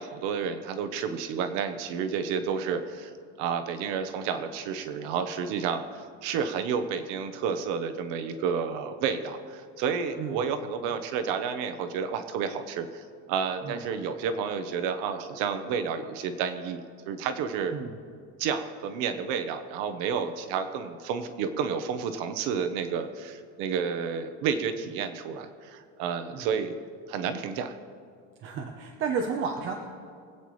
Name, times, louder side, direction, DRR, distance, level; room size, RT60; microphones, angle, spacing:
voice 1, 0.0-3.1 3.4-16.8 17.1-17.7 18.4-26.8 27.1-27.7, right 6 dB, 80° right, 8 dB, 1.0 m, -30 dB
voice 2, 28.4-29.7, right 5 dB, 40° right, 3 dB, 0.9 m, -32 dB
24.0 x 8.5 x 3.2 m, 2.2 s
cardioid pair, 180°, 31 cm